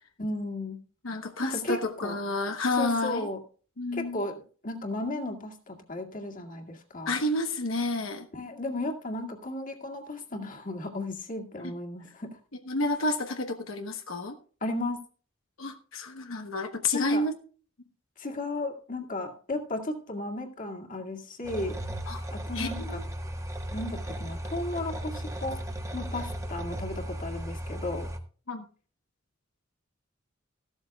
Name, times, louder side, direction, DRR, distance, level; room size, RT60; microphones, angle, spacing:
voice 1, 0.2-0.8 1.4-2.2 2.7-3.4 3.9-7.2 8.3-12.4 14.6-15.0 16.9-17.3 18.2-21.8 22.3-23.0 23.7-25.6 25.9-28.1, left 2 dB, 40° left, 3 dB, 2.0 m, -34 dB
voice 2, 1.0-3.3 3.8-4.2 7.1-8.3 11.6-11.7 12.7-14.3 15.6-17.3 22.1-22.2 22.5-23.0 28.5-28.7, left 2 dB, 85° left, 5 dB, 1.2 m, -30 dB
sound 1, 21.4-28.2, equal, 15° right, 1.3 m, -36 dB
15.0 x 12.5 x 2.3 m, 0.40 s
head